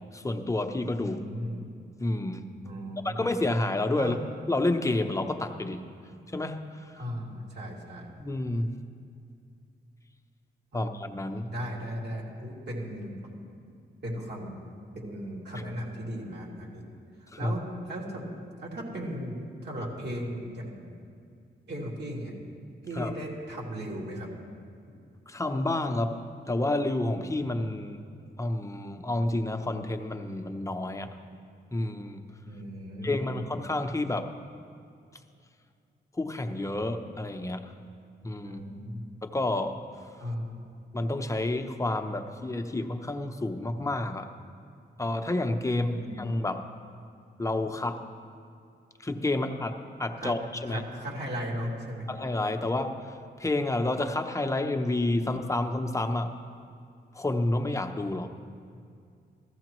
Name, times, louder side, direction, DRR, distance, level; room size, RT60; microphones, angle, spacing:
voice 1, 0.1-1.2 2.0-2.6 3.0-4.2 4.5-5.8 6.3-6.6 6.9-7.0 8.2-8.7 10.7-11.5 17.3-17.5 22.9-23.1 25.3-26.2 26.5-28.0 28.4-31.2 31.7-32.2 33.0-34.3 36.2-37.7 38.2-38.6 39.2-39.8 40.9-44.3 45.0-45.9 46.2-46.7 47.4-48.0 49.0-50.8 52.1-53.0 53.4-56.3 57.1-58.3, left 2 dB, 15° left, 6 dB, 0.7 m, -29 dB
voice 2, 1.0-1.6 2.6-3.2 4.0-4.2 7.0-8.1 10.7-10.9 11.5-13.2 14.0-14.5 14.9-16.8 17.4-18.3 18.6-20.9 21.7-22.3 22.8-24.3 32.5-33.3 38.4-39.1 40.2-40.5 45.7-46.2 50.2-50.3 50.6-52.1, equal, 65° right, -3 dB, 2.5 m, -36 dB
15.0 x 14.5 x 3.0 m, 2.3 s
wide cardioid pair, 110°, 19 cm